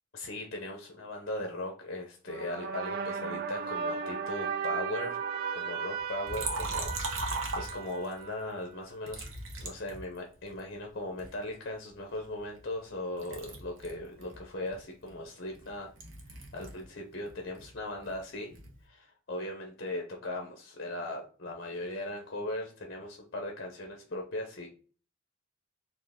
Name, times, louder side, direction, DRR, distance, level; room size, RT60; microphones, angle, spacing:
voice 1, 0.1-5.2 5.5-9.2 9.6-15.9 16.3-18.5 18.8-24.7, left 1 dB, 50° left, 2 dB, 0.7 m, -38 dB
sound 1, 2.3-8.7, right 6 dB, 50° right, 0.5 m, -36 dB
Liquid, 6.3-8.2 9.1-10.6 11.2-12.9 13.2-16.9 17.2-18.8, right 2 dB, 70° right, 0.9 m, -39 dB
4.4 x 2.6 x 3.5 m, 0.40 s
head